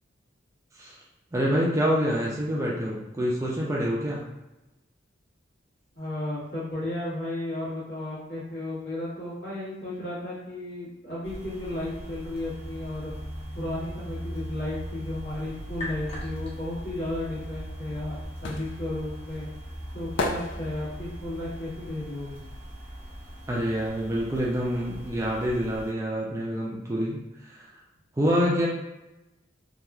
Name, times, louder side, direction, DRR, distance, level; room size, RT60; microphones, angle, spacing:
voice 1, 1.3-4.3 23.5-27.7 28.2-28.7, equal, 15° right, -4 dB, 0.3 m, -27 dB
voice 2, 5.9-13.1 13.5-19.5 19.9-22.4, left 1 dB, 55° left, -9 dB, 1.3 m, -34 dB
sound 1, 11.2-25.9, equal, 30° left, 0.7 m, -39 dB
sound 2, 18.4-23.4 23.7-25.3 25.5-25.6, left 3 dB, 70° left, 0.3 m, -36 dB
2.9 x 2.3 x 2.3 m, 0.95 s
head